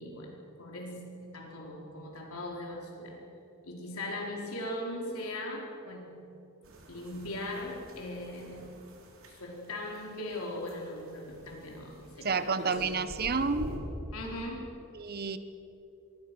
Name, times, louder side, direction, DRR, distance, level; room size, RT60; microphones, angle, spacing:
voice 1, 0.0-3.2 3.6-6.2 6.9-8.7 9.2-12.8 14.1-14.8, left 1 dB, 90° left, 0 dB, 4.5 m, -39 dB
sound 1, 6.6-13.8, right 1 dB, 70° right, 4.1 m, -48 dB
voice 2, 12.2-13.7 15.0-15.4, right 4 dB, 45° right, 11 dB, 1.1 m, -30 dB
26.5 x 22.5 x 6.3 m, 2.9 s
head